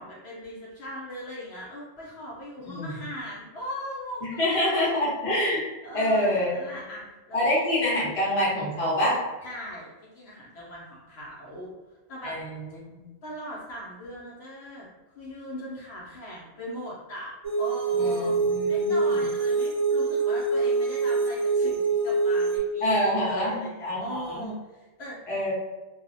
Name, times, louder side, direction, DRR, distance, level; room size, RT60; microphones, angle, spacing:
voice 1, 0.0-5.0 5.8-7.6 9.4-11.7 12.1-12.4 13.2-18.3 18.7-25.2, equal, 70° left, -5 dB, 0.8 m, -39 dB
voice 2, 4.2-5.7 5.9-6.6 7.3-9.2 12.2-12.4 12.9-13.0 18.0-19.2 22.8-24.5 25.3-25.5, left 1 dB, 35° left, -6 dB, 0.8 m, -26 dB
sound 1, 17.4-22.6, right 3 dB, 25° right, 0.5 m, -25 dB
2.4 x 2.0 x 2.6 m, 1.1 s
omnidirectional pair, 1.2 m